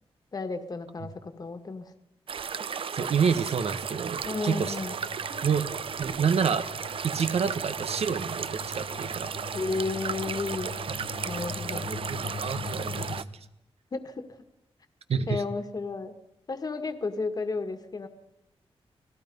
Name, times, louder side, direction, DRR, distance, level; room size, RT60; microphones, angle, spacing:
voice 1, 0.3-1.9 4.2-4.9 9.5-10.8 11.2-11.9 13.9-14.5 15.3-16.1 16.5-18.1, left 3 dB, 40° left, 8 dB, 1.8 m, -33 dB
sound 1, 2.3-13.2, right 6 dB, 60° right, 0.7 m, -35 dB
voice 2, 2.9-4.7 5.4-6.7 7.0-9.3 11.7-13.2 15.1-15.4, right 6 dB, 75° right, 10 dB, 1.4 m, -28 dB
sound 2, 3.8-13.2, left 5 dB, 65° left, 2.3 m, -42 dB
29.5 x 19.0 x 5.4 m, 0.93 s
wide cardioid pair, 135°, 10 cm